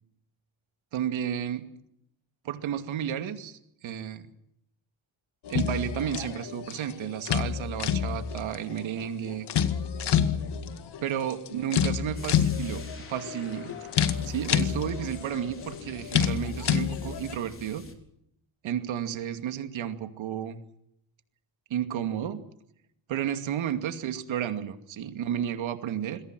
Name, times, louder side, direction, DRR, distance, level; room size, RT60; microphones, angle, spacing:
voice 1, 0.9-1.6 2.4-4.2 5.5-9.5 11.0-12.8 13.1-13.8 14.2-17.8 18.6-20.6 21.7-22.4 23.1-26.2, right 10 dB, 85° right, 8 dB, 2.5 m, -32 dB
sound 1, 5.4-17.3, left 8 dB, 60° left, 2.0 m, -29 dB
sound 2, 12.1-17.9, left 4 dB, 30° left, 4.2 m, -47 dB
27.0 x 22.5 x 6.2 m, 0.74 s
cardioid pair, 150°, 46 cm